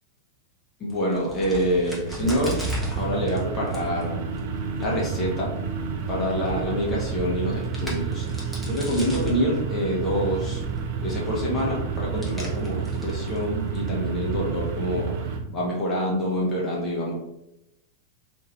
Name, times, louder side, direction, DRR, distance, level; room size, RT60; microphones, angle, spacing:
voice 1, 0.8-2.6 2.9-4.2 4.8-5.5 6.1-8.2 8.6-10.6 11.0-15.1 15.5-17.1, equal, 25° left, -4 dB, 0.9 m, -26 dB
Crack, 1.0-14.2, equal, ahead, 0.9 m, -40 dB
sound 1, 1.3-15.4, right 6 dB, 50° right, 0.4 m, -30 dB
2.6 x 2.5 x 3.1 m, 0.87 s
figure-of-eight pair, 90°, 0 cm